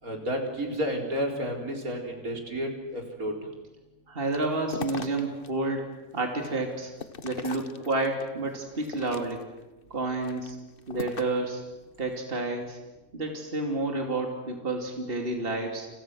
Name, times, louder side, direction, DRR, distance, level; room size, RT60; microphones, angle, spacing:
voice 1, 0.0-3.3, equal, 65° right, 2 dB, 4.7 m, -31 dB
voice 2, 4.1-6.9 7.2-9.4 9.9-10.6 10.9-11.6 12.0-12.8 13.1-15.9, right 2 dB, 40° right, 2 dB, 3.0 m, -30 dB
sound 1, 4.2-5.5 5.9-8.2 8.7-9.6 10.1-11.5, left 5 dB, 40° left, 1.2 m, -40 dB
29.5 x 29.0 x 6.3 m, 1.1 s
omnidirectional pair, 1.6 m